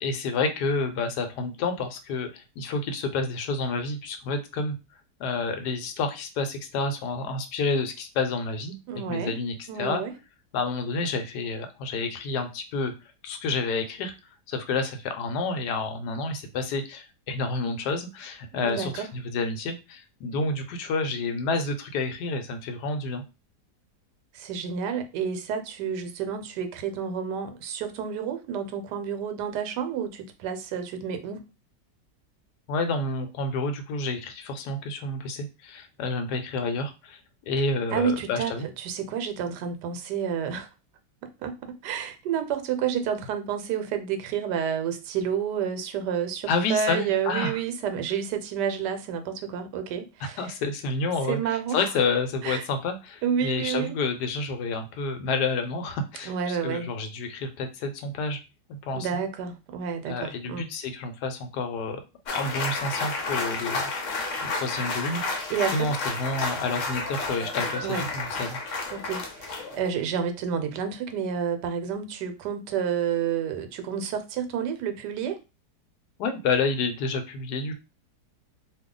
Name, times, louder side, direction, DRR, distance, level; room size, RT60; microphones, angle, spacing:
voice 1, 0.0-4.8 5.2-8.7 9.1-10.0 10.5-12.9 13.2-14.1 14.5-23.2 32.7-37.2 37.5-38.7 46.5-47.6 50.2-58.4 58.7-59.1 60.1-62.0 62.3-63.9 64.4-65.4 65.7-68.6 76.2-77.7, left 3 dB, 80° left, 1.2 m, -29 dB
voice 2, 8.9-9.3 9.7-10.1 18.5-19.1 24.3-31.5 37.9-40.7 41.2-50.5 51.3-51.9 52.4-52.7 53.2-54.0 56.3-56.9 58.9-60.7 65.5-65.9 67.8-68.1 68.9-75.4, right 7 dB, 85° right, 1.2 m, -30 dB
sound 1, 62.3-69.9, left 3 dB, 60° left, 0.9 m, -31 dB
2.7 x 2.3 x 3.6 m
omnidirectional pair, 1.8 m